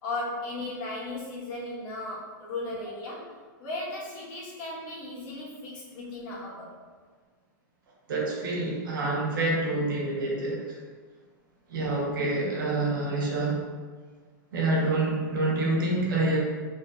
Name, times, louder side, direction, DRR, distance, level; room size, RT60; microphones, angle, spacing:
voice 1, 0.0-6.7, left 2 dB, 40° left, -6 dB, 1.4 m, -36 dB
voice 2, 8.1-10.8 11.7-13.6 14.5-16.4, right 2 dB, 85° right, -3 dB, 1.1 m, -27 dB
4.5 x 3.1 x 2.4 m, 1.5 s
hypercardioid pair, 135°, 11 cm